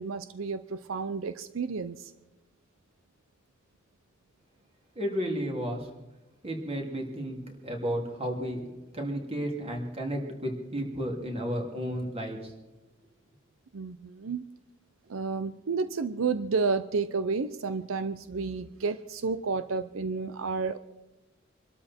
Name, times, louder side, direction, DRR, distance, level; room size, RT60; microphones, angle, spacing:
voice 1, 0.0-2.1 13.7-14.4 15.1-20.8, right 4 dB, 85° right, 13 dB, 0.6 m, -31 dB
voice 2, 4.9-5.9 6.4-8.6 8.9-12.5, equal, 30° right, 1 dB, 3.0 m, -33 dB
25.0 x 12.5 x 4.4 m, 1.1 s
head